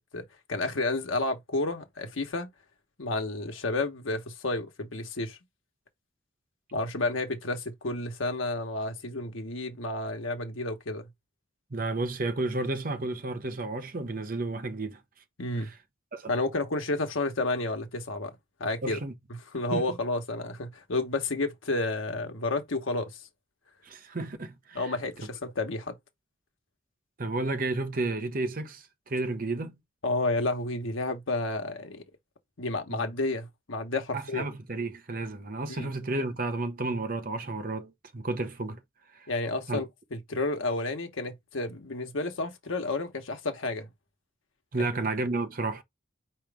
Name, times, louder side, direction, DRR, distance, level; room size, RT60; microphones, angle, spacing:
voice 1, 0.1-2.5 3.0-5.4 6.7-11.1 15.4-15.7 16.3-18.3 18.6-19.0 19.3-23.2 24.7-26.0 30.0-32.0 32.6-34.5 35.7-35.9 39.3-43.9, left 2 dB, 80° left, 1.1 m, -31 dB
voice 2, 11.7-15.0 15.6-15.7 16.1-16.3 18.8-19.1 19.7-20.0 23.8-25.0 27.2-29.7 32.9-33.0 34.1-38.8 39.1-39.3 39.7-39.8 44.7-45.8, right 2 dB, 45° right, 0.8 m, -32 dB
4.9 x 3.1 x 3.4 m
head